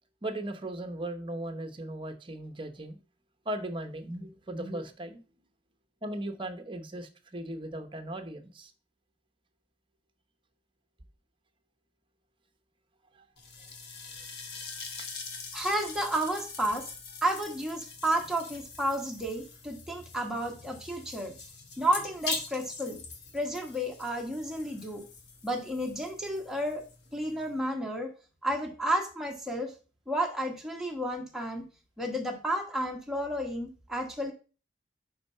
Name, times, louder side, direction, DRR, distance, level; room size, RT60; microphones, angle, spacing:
voice 1, 0.2-3.0 3.5-5.2 6.0-8.7 13.1-13.3 15.0-15.1, right 1 dB, 30° right, 7 dB, 0.8 m, -37 dB
sound 1, 13.4-27.6, left 4 dB, 70° left, 1.2 m, -43 dB
voice 2, 15.5-16.9 17.2-21.4 21.8-23.0 23.3-25.0 25.4-26.8 27.1-28.1 28.4-29.7 30.1-31.6 32.0-34.3, right 1 dB, 5° right, 1 dB, 1.2 m, -31 dB
5.3 x 4.3 x 5.4 m, 0.35 s
head